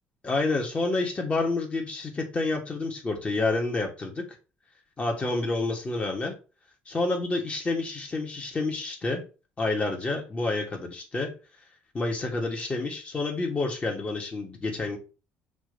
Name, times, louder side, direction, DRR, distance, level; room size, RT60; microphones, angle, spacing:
voice 1, 0.2-4.2 5.0-6.3 6.9-9.2 9.6-11.3 11.9-15.0, left 3 dB, 30° left, 2.3 m, -29 dB
6.0 x 3.2 x 5.5 m
supercardioid pair, 90°, 5 cm